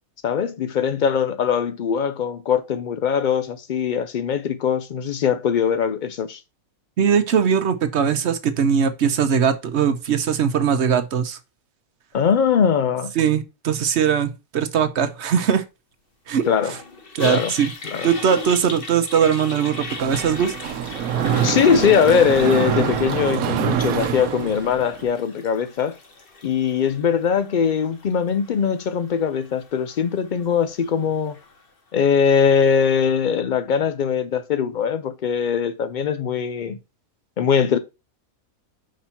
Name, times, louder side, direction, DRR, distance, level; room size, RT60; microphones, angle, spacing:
voice 1, 0.2-6.4 12.1-13.1 16.5-16.7 17.2-17.5 17.9-18.1 21.4-26.0 26.4-31.4 31.9-36.8 37.4-37.8, left 7 dB, 85° left, 0.4 m, -21 dB
voice 2, 7.0-11.4 13.2-15.6 16.3-16.4 17.1-17.7 18.0-20.5, right 7 dB, 60° right, 0.9 m, -20 dB
Toilet flush, 16.4-31.6, left 3 dB, 45° left, 1.2 m, -37 dB
Mechanisms, 19.9-25.0, right 9 dB, 80° right, 1.1 m, -25 dB
5.2 x 4.3 x 5.6 m
omnidirectional pair, 1.5 m